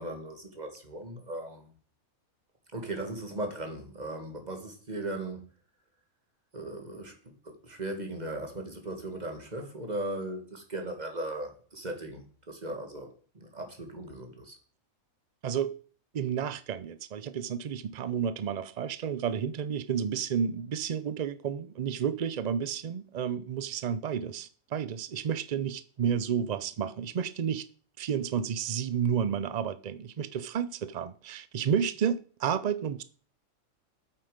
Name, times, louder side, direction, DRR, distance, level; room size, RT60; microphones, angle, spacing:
voice 1, 0.0-1.7 2.7-5.5 6.5-7.2 7.4-14.6, right 1 dB, 30° right, 2.2 m, -38 dB
voice 2, 15.4-15.8 16.1-27.7 28.0-33.0, right 8 dB, 80° right, 0.3 m, -31 dB
8.3 x 8.3 x 5.1 m
omnidirectional pair, 1.5 m